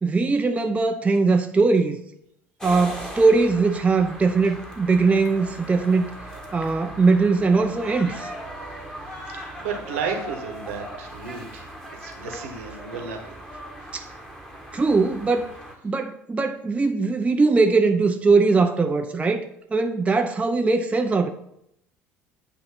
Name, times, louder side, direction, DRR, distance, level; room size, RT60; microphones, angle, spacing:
voice 1, 0.0-2.0 2.6-6.1 6.5-8.3 13.9-14.0 14.7-15.5 15.8-19.4 19.7-21.3, right 4 dB, 15° right, 0.6 m, -20 dB
sound 1, 2.6-15.7, equal, 10° left, 1.5 m, -38 dB
voice 2, 9.6-11.7 11.9-13.4, right 6 dB, 65° right, 1.2 m, -32 dB
8.6 x 3.0 x 5.8 m
figure-of-eight pair, 60°, 8 cm